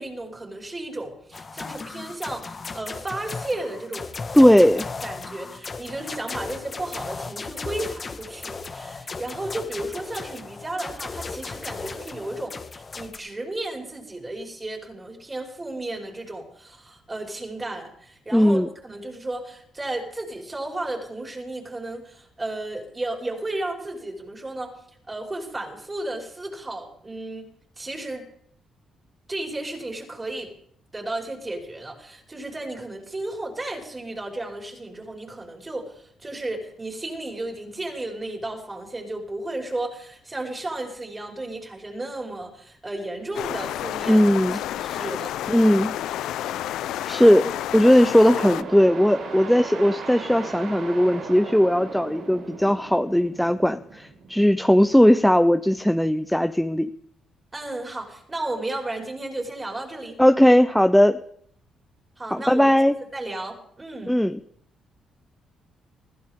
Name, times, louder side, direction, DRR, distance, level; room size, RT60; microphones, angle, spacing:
voice 1, 0.0-4.1 5.0-24.8 25.1-28.3 29.3-30.5 30.9-45.3 57.5-60.2 62.2-62.7 63.0-64.2, right 2 dB, 20° right, 0 dB, 5.6 m, -34 dB
sound 1, 1.3-13.2, left 4 dB, 35° left, 1.8 m, -36 dB
voice 2, 4.3-4.9 18.3-18.7 44.1-44.6 45.5-45.9 47.0-56.9 60.2-61.2 62.3-62.9 64.1-64.4, equal, 5° left, 8 dB, 0.7 m, -18 dB
sound 2, 43.3-48.6, left 12 dB, 85° left, 0.5 m, -30 dB
sound 3, 48.3-55.7, right 4 dB, 80° right, 5.4 m, -38 dB
21.5 x 15.5 x 3.8 m, 0.67 s
cardioid pair, 90°, 0 cm